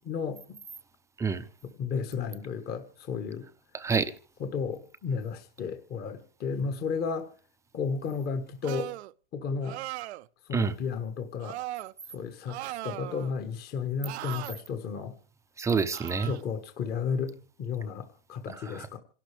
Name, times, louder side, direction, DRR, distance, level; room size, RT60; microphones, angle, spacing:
voice 1, 0.0-0.6 1.6-3.5 4.4-7.3 7.7-8.9 9.3-9.8 10.5-11.6 12.1-15.1 16.2-19.0, left 5 dB, 30° left, 1.4 m, -33 dB
voice 2, 3.7-4.1 10.5-10.7 15.6-16.3 18.5-18.9, right 5 dB, 10° right, 0.6 m, -28 dB
sound 1, 8.6-9.1 9.6-10.3 11.4-11.9 12.5-13.3 14.0-14.5 15.9-16.4, right 16 dB, 70° right, 0.6 m, -38 dB
27.5 x 12.0 x 3.4 m
supercardioid pair, 140°, 34 cm